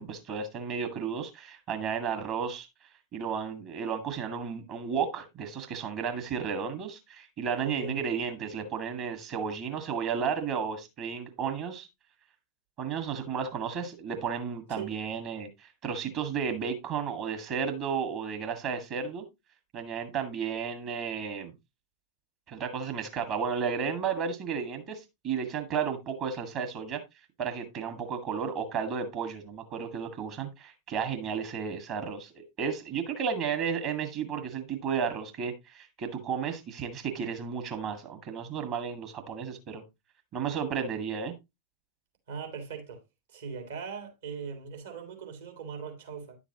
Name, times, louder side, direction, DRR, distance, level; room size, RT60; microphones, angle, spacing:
voice 1, 0.0-2.7 3.1-11.9 12.8-19.2 19.7-21.5 22.5-27.0 27.4-39.8 40.3-41.3, right 6 dB, 40° right, 1.7 m, -33 dB
voice 2, 7.6-8.1 14.7-14.9 42.3-43.0 43.3-46.4, right 5 dB, 65° right, 2.9 m, -40 dB
10.5 x 7.1 x 2.9 m
figure-of-eight pair, 90°, 0 cm